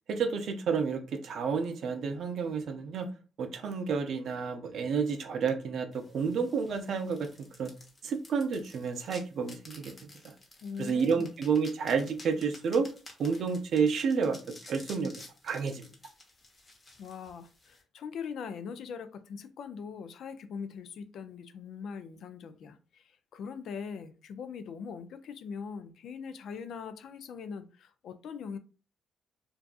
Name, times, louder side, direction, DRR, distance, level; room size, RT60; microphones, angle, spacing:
voice 1, 0.1-3.1 3.4-7.7 8.0-9.9 10.2-10.3 10.8-12.9 13.2-14.4 14.7-15.1 15.4-15.9, right 5 dB, 65° right, 0.5 m, -30 dB
sound 1, 5.9-17.8, left 2 dB, 35° left, 0.9 m, -53 dB
voice 2, 10.6-11.3 17.0-28.6, left 6 dB, 70° left, 0.3 m, -41 dB
2.6 x 2.3 x 2.3 m
cardioid pair, 90°, 0 cm